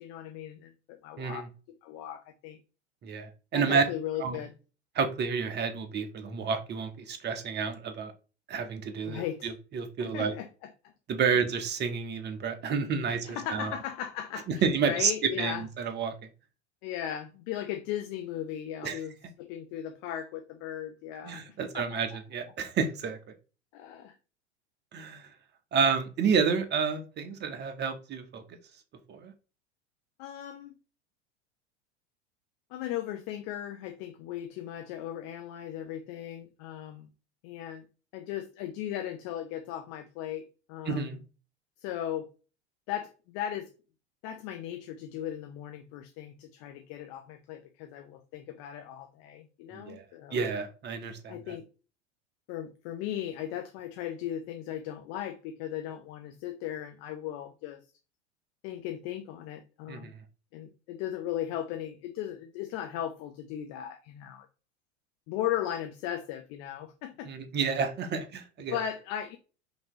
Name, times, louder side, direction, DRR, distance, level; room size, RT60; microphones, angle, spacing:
voice 1, 0.0-2.6 3.5-4.6 9.0-9.5 10.0-10.7 13.1-15.7 16.8-21.4 21.7-22.2 23.7-24.1 30.2-30.7 32.7-37.1 37.4-37.9 38.1-41.2 41.8-42.3 42.9-43.7 44.2-50.5 51.3-51.6 52.5-57.8 58.6-60.1 60.5-64.5 65.3-67.3 68.7-69.4, left 11 dB, 45° left, 0.6 m, -37 dB
voice 2, 3.0-3.8 4.2-4.4 4.9-8.1 8.5-10.3 11.1-13.7 14.6-15.1 15.4-16.1 18.8-19.0 21.2-23.2 24.9-25.3 25.7-28.4 29.1-29.3 40.9-41.2 49.7-50.0 50.3-51.4 59.9-60.1 67.2-68.8, right 6 dB, 30° right, 0.9 m, -30 dB
5.3 x 2.9 x 3.0 m
hypercardioid pair, 90°, 35 cm